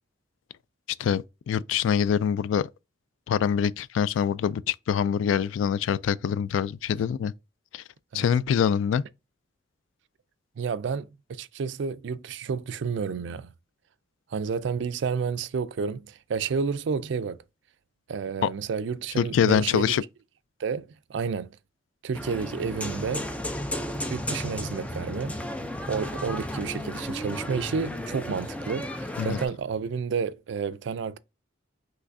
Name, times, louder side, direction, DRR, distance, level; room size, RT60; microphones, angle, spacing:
voice 1, 1.0-2.7 3.3-7.3 7.7-7.8 8.1-9.0 18.4-18.5 19.2-20.0 29.2-29.4, left 8 dB, 80° left, 0.3 m, -24 dB
voice 2, 10.6-13.5 14.3-17.4 18.1-20.0 20.6-21.5 22.0-23.2 24.1-25.4 25.9-31.2, right 5 dB, 70° right, 0.4 m, -30 dB
sound 1, 22.1-29.5, left 1 dB, 5° left, 0.5 m, -33 dB
5.8 x 3.1 x 2.6 m
head